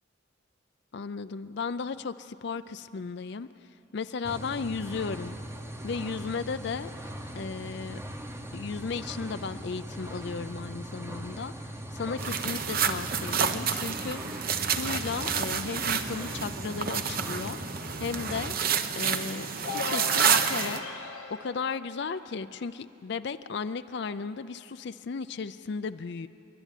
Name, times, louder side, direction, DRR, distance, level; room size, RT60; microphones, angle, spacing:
voice 1, 0.9-3.5 3.9-5.4 5.8-6.9 7.3-8.0 8.5-11.5 11.9-14.2 14.6-17.6 18.0-18.5 18.9-20.8 21.4-26.3, left 5 dB, 55° left, 12 dB, 0.4 m, -35 dB
sound 1, 4.2-18.6, equal, 15° right, 0.9 m, -40 dB
sound 2, 12.2-20.8, right 7 dB, 45° right, 0.8 m, -29 dB
sound 3, 19.6-22.4, left 4 dB, 80° left, 1.3 m, -37 dB
29.0 x 11.5 x 9.2 m, 2.9 s
head